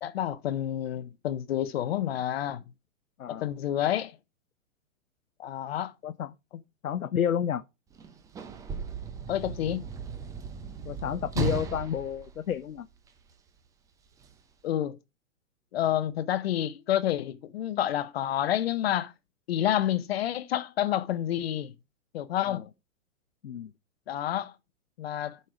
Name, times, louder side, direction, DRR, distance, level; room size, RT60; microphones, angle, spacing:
voice 1, 0.0-2.6 3.3-4.2 5.4-5.9 9.3-9.8 14.6-15.0 15.7-19.1 19.5-21.7 22.1-22.6 24.1-24.5 25.0-25.4, left 11 dB, 50° left, 0.8 m, -29 dB
voice 2, 6.0-6.3 6.8-7.6 10.8-12.9 22.5-22.6 23.4-23.7, left 9 dB, 80° left, 0.8 m, -30 dB
Sliding door / Slam, 7.9-13.3 14.2-14.3, right 5 dB, 10° right, 0.6 m, -36 dB
7.5 x 5.4 x 4.8 m
hypercardioid pair, 130°, 41 cm